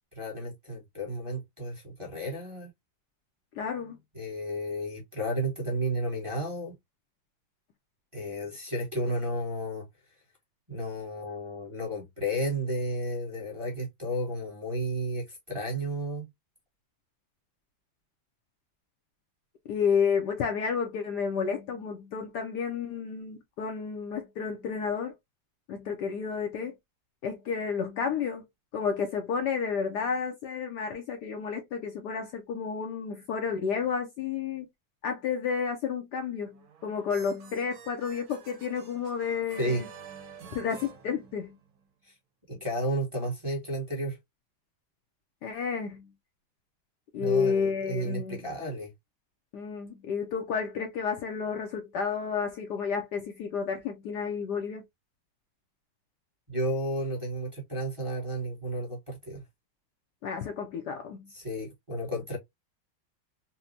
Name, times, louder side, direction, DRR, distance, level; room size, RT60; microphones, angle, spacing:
voice 1, 0.1-2.7 4.1-6.7 8.1-9.9 10.7-16.3 39.6-39.8 42.0-42.1 42.5-44.2 47.2-48.9 56.5-59.4 61.3-62.4, right 1 dB, 20° right, 1.1 m, -32 dB
voice 2, 3.6-4.0 19.7-25.1 25.7-26.7 27.2-28.5 28.7-34.7 35.0-39.9 40.5-41.6 45.4-46.1 47.1-48.5 49.5-54.8 60.2-61.3, left 6 dB, 70° left, 1.0 m, -31 dB
sound 1, 36.5-41.9, right 7 dB, 90° right, 1.7 m, -49 dB
4.2 x 2.2 x 2.6 m
omnidirectional pair, 2.2 m